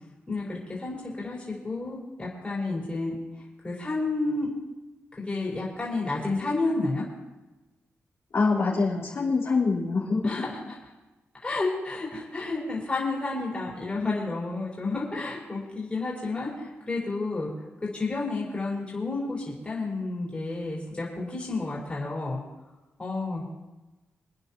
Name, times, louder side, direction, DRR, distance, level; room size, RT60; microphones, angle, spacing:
voice 1, 0.3-3.2 3.6-4.5 5.2-7.0 10.2-10.7 11.4-17.5 17.9-22.4 23.0-23.4, left 3 dB, 25° left, -5 dB, 4.8 m, -31 dB
voice 2, 8.3-10.2, left 4 dB, 60° left, -5 dB, 4.5 m, -24 dB
27.5 x 10.0 x 3.0 m, 1.1 s
wide cardioid pair, 130°, 5 cm